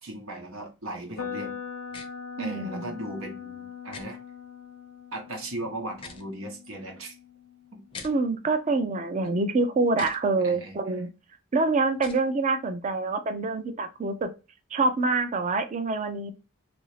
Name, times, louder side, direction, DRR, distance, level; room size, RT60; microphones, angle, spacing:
voice 1, 0.0-1.5 2.4-4.2 5.1-7.2 7.7-7.8 10.4-10.8, right 1 dB, 90° right, 1.0 m, -37 dB
sound 1, 1.2-9.1, left 7 dB, 75° left, 0.6 m, -41 dB
sound 2, 1.9-2.1 3.9-4.1 5.9-6.3 7.9-8.1 9.9-10.2 11.9-12.2, left 5 dB, 25° left, 0.5 m, -41 dB
voice 2, 2.4-2.8 8.0-11.1 11.5-14.3 14.7-16.3, right 3 dB, 35° right, 0.4 m, -26 dB
3.1 x 2.5 x 3.1 m
head